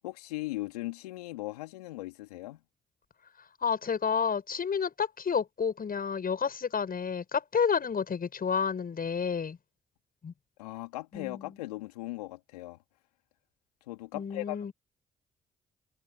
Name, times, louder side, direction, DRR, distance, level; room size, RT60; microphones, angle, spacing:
voice 1, 0.0-2.6 10.6-12.8 13.9-14.7, left 19 dB, 85° left, 3.2 m, -38 dB
voice 2, 3.6-9.6 10.2-10.3 11.1-11.5 14.1-14.7, left 6 dB, 50° left, 7.4 m, -30 dB
hypercardioid pair, 40°, 19 cm